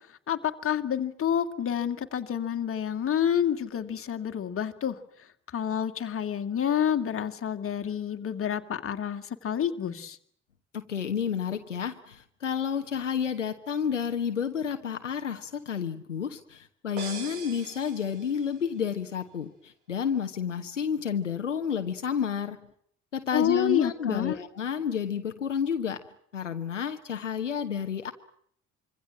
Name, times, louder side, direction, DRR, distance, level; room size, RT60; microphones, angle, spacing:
voice 1, 0.3-5.0 5.5-10.2 23.3-24.4, left 9 dB, 35° left, 6 dB, 2.4 m, -28 dB
voice 2, 10.7-22.6 23.1-26.0 26.3-28.1, left 7 dB, 85° left, 7 dB, 1.3 m, -30 dB
sound 1, 17.0-18.8, right 5 dB, 70° right, 4.5 m, -42 dB
26.0 x 25.0 x 7.4 m, 0.65 s
figure-of-eight pair, 50°, 36 cm